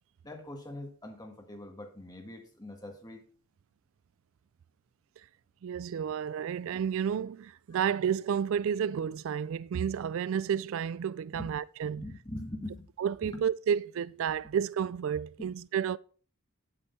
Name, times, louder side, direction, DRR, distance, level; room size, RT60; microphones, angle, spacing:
voice 1, 0.2-3.3 11.3-11.5 11.9-12.9 13.2-13.4 15.4-15.5, left 1 dB, 15° left, 1.6 m, -42 dB
voice 2, 5.6-12.0 13.0-16.0, right 8 dB, 65° right, 0.3 m, -31 dB
9.2 x 7.9 x 4.1 m
head